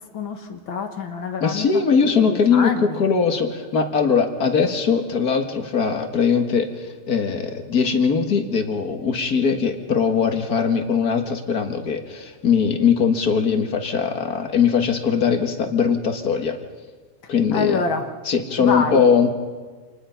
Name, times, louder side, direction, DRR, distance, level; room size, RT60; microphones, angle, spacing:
voice 1, 0.1-1.7 2.0-3.0 17.5-18.1 18.6-19.1, left 5 dB, 70° left, 5 dB, 2.3 m, -26 dB
voice 2, 1.4-16.6 17.3-17.8 18.3-19.3, left 6 dB, 50° left, 6 dB, 2.0 m, -20 dB
27.5 x 19.5 x 5.7 m, 1.4 s
omnidirectional pair, 2.3 m